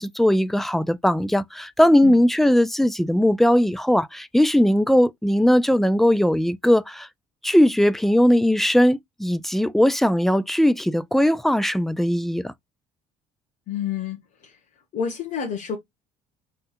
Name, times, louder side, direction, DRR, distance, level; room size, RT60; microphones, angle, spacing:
voice 1, 0.0-7.1 7.4-12.5, equal, ahead, 0.4 m, -19 dB
voice 2, 13.7-14.6 14.9-15.8, left 7 dB, 45° left, 1.8 m, -29 dB
5.4 x 3.7 x 2.5 m
figure-of-eight pair, 55°, 20 cm